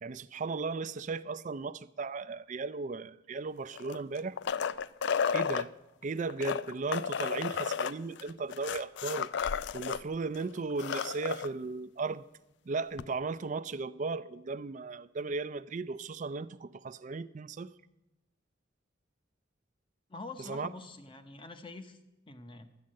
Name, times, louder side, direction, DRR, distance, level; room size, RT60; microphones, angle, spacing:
voice 1, 0.0-4.4 5.3-5.7 6.0-12.2 12.7-17.7 20.4-20.7, right 4 dB, 40° right, 0.4 m, -36 dB
sound 1, 3.7-5.7 6.3-10.0 10.3-10.4 10.7-11.5 13.0-13.1, left 7 dB, 60° left, 0.4 m, -32 dB
voice 2, 20.1-22.0 22.3-22.7, left 3 dB, 25° left, 0.9 m, -45 dB
11.5 x 8.5 x 7.6 m
head